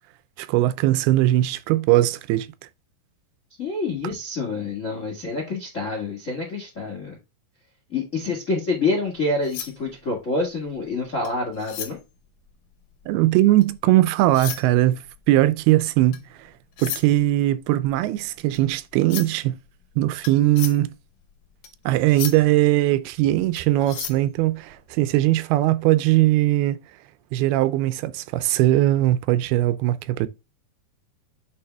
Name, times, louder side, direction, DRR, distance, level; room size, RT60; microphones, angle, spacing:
voice 1, 0.4-2.5 13.1-16.5 16.8-19.6 20.0-20.9 21.9-26.8 27.3-30.3, right 15 dB, 85° right, 2.5 m, -20 dB
voice 2, 3.6-7.2 7.9-12.0, left 3 dB, 50° left, 0.8 m, -27 dB
sound 1, 9.1-13.9 14.2-25.2, left 10 dB, 70° left, 2.2 m, -37 dB
8.5 x 3.4 x 3.4 m
omnidirectional pair, 4.5 m